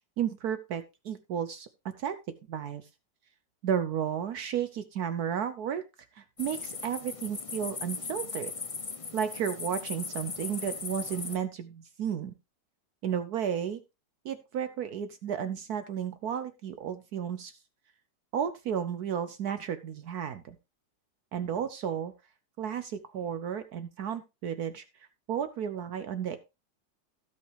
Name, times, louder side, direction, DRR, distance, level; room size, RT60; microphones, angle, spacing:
voice 1, 0.2-2.2 2.5-2.9 3.6-5.8 6.2-8.5 9.1-12.3 13.0-13.8 14.2-17.6 18.3-20.6 21.3-22.1 22.6-24.8 25.3-26.4, right 8 dB, 65° right, 11 dB, 1.2 m, -33 dB
sound 1, 6.4-11.4, left 4 dB, 45° left, 0.4 m, -38 dB
16.5 x 5.5 x 3.3 m, 0.26 s
omnidirectional pair, 1.9 m